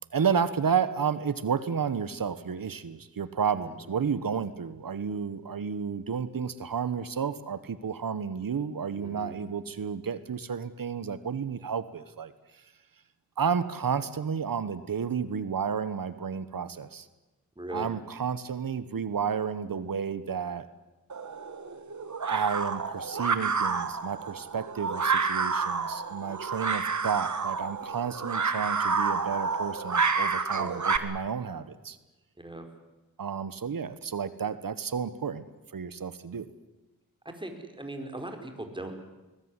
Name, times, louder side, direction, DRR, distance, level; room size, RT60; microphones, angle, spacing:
voice 1, 0.1-12.3 13.4-17.1 17.7-20.7 22.3-32.0 33.2-35.5 35.7-36.5, right 6 dB, 70° right, 14 dB, 1.4 m, -31 dB
voice 2, 8.9-9.4 17.6-17.9 30.4-30.7 32.4-32.6 37.2-39.0, right 1 dB, 15° right, 5 dB, 4.8 m, -39 dB
sound 1, 21.1-31.0, right 5 dB, 55° right, 1.9 m, -29 dB
21.5 x 20.5 x 9.9 m, 1.1 s
cardioid pair, 70°, 35 cm